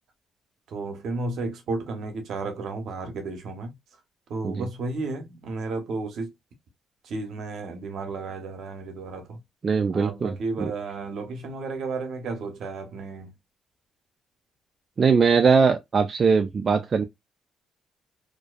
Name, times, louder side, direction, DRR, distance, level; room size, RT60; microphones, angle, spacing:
voice 1, 0.7-3.7 4.3-6.3 7.0-9.4 9.9-13.3, right 3 dB, 70° right, 0.8 m, -33 dB
voice 2, 9.6-10.7 15.0-17.0, right 5 dB, 40° right, 0.3 m, -21 dB
2.5 x 2.2 x 2.2 m
cardioid pair, 90°, 0 cm